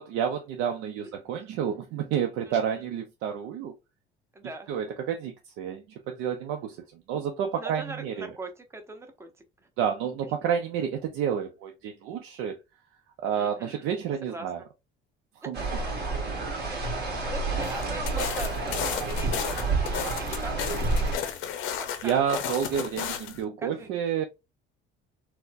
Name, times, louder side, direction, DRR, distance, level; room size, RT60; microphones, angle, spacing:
voice 1, 0.0-3.7 4.7-6.8 7.1-8.3 9.8-12.6 13.2-14.6 15.5-15.6 22.0-24.2, right 8 dB, 85° right, 0.5 m, -29 dB
voice 2, 2.4-2.8 4.3-4.7 7.6-9.3 9.6-9.7 10.4-10.5 13.4-14.0 14.3-14.7 15.4-15.5 16.0-21.5 21.8-22.4 23.6-24.1, right 3 dB, 15° right, 0.6 m, -42 dB
sound 1, 15.5-21.2, right 3 dB, 55° right, 1.5 m, -29 dB
sound 2, 17.6-23.4, left 8 dB, 80° left, 0.7 m, -33 dB
4.3 x 2.1 x 2.5 m
cardioid pair, 140°, 21 cm